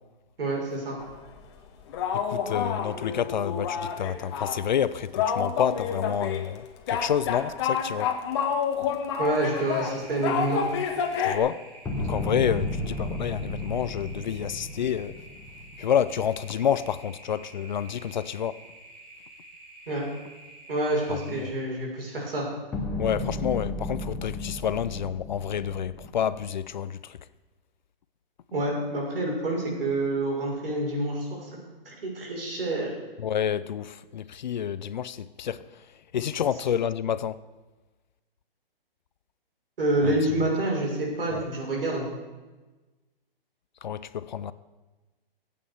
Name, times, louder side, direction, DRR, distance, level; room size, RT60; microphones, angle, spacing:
voice 1, 0.4-1.0 9.2-10.6 19.9-20.0 20.7-22.5 28.5-31.5 31.8-32.9 39.8-42.1, right 2 dB, 70° right, 6.1 m, -27 dB
sound 1, 1.0-1.4 1.9-4.6 4.8-4.9 5.1-6.4 6.9-11.4, left 7 dB, 30° left, 1.3 m, -29 dB
voice 2, 2.1-8.1 11.2-11.6 12.0-15.2 15.8-18.6 21.1-21.5 23.0-27.2 33.2-35.6 36.1-37.4 40.0-40.2 41.3-41.4 43.8-44.5, left 9 dB, 50° left, 0.6 m, -29 dB
sound 2, 9.2-21.5, right 2 dB, 45° right, 5.6 m, -49 dB
sound 3, 11.9-16.1 22.7-26.5, left 1 dB, 5° left, 1.0 m, -34 dB
15.0 x 8.7 x 7.0 m
hypercardioid pair, 165°, 30 cm